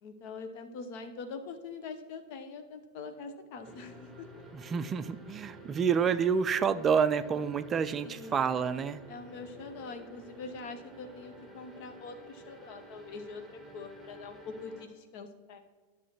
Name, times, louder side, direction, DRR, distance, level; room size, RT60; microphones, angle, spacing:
voice 1, 0.0-4.4 8.0-8.5 9.1-15.6, left 4 dB, 45° left, 7 dB, 0.8 m, -44 dB
sound 1, 3.6-14.9, right 2 dB, ahead, 1.3 m, -51 dB
voice 2, 4.5-9.0, right 6 dB, 25° right, 12 dB, 0.4 m, -28 dB
12.5 x 6.3 x 3.0 m, 1.4 s
figure-of-eight pair, 90°, 0 cm